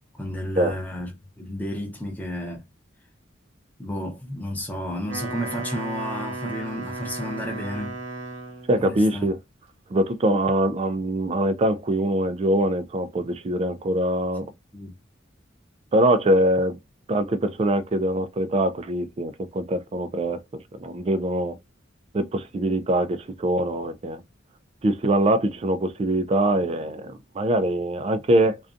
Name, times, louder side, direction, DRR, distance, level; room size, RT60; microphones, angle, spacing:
voice 1, 0.2-2.6 3.8-8.0 8.8-9.3 14.7-14.9, left 1 dB, 10° left, 0.7 m, -32 dB
Wind instrument woodwind instrument, 4.9-8.8, right 2 dB, 75° right, 0.7 m, -34 dB
voice 2, 8.7-9.4 9.9-14.5 15.9-16.8 17.1-20.4 20.8-21.6 22.1-24.2 24.8-28.6, right 1 dB, 30° right, 0.3 m, -23 dB
2.5 x 2.2 x 2.5 m
head